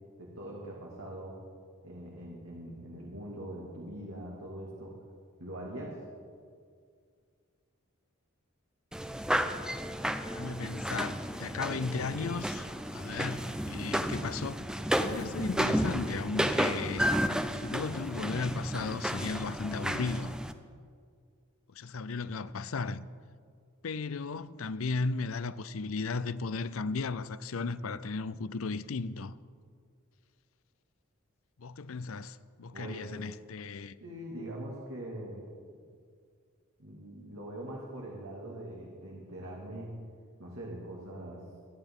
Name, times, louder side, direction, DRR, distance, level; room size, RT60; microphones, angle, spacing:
voice 1, 0.2-1.4 1.8-4.9 5.4-5.9 32.7-33.1 34.0-35.4 36.8-39.9 40.4-41.4, right 1 dB, 85° right, 2.4 m, -42 dB
sound 1, 8.9-20.5, equal, 5° right, 0.6 m, -32 dB
voice 2, 10.3-14.6 15.0-17.2 17.6-20.3 21.7-23.1 23.8-29.3 31.6-33.9, left 4 dB, 70° left, 0.5 m, -35 dB
25.0 x 10.0 x 3.7 m
head